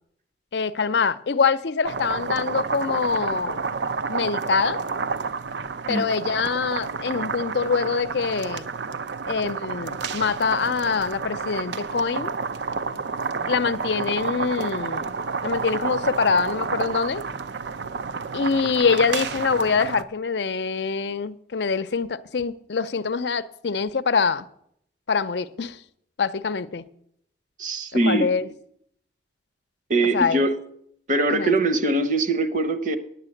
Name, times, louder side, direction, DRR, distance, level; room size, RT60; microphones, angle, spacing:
voice 1, 0.5-3.6 4.1-4.8 5.9-8.7 9.3-12.3 13.5-15.1 15.4-17.2 18.3-24.5 25.1-25.8 26.2-26.8 28.0-28.5 30.1-30.4 31.3-31.6, left 5 dB, 70° left, 0.6 m, -24 dB
sound 1, 1.8-20.0, right 5 dB, 80° right, 0.6 m, -30 dB
voice 2, 27.6-28.3 29.9-30.6 31.1-33.0, right 2 dB, 45° right, 0.9 m, -22 dB
9.2 x 9.1 x 7.8 m
head